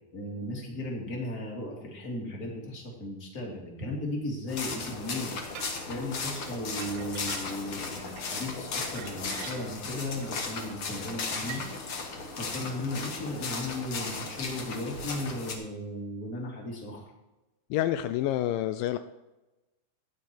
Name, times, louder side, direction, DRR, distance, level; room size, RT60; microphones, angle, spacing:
voice 1, 0.1-11.8 12.4-17.1, left 1 dB, 25° left, -1 dB, 2.4 m, -36 dB
sound 1, 4.5-15.5, left 4 dB, 50° left, 1.7 m, -36 dB
sound 2, 5.6-5.8 6.6-7.8 8.1-8.3 8.8-9.8 10.2-10.4 11.4-11.7, right 8 dB, 90° right, 2.9 m, -44 dB
voice 2, 17.7-19.0, left 12 dB, 90° left, 11 dB, 1.9 m, -28 dB
15.0 x 9.5 x 4.6 m, 1.0 s
omnidirectional pair, 4.5 m